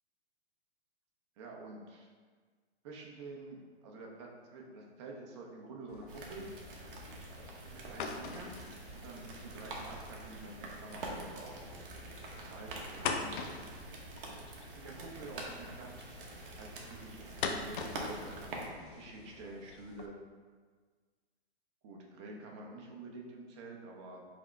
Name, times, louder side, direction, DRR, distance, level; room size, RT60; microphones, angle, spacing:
voice 1, 1.4-2.1 2.8-6.5 7.7-11.6 12.3-13.7 14.7-20.2 21.8-24.3, right 2 dB, 25° right, 0 dB, 0.5 m, -48 dB
sound 1, 5.9-20.1, left 5 dB, 50° left, 0.5 m, -44 dB
sound 2, 6.1-18.7, right 2 dB, 55° right, 0.9 m, -46 dB
4.8 x 2.0 x 4.4 m, 1.5 s
hypercardioid pair, 145°, 32 cm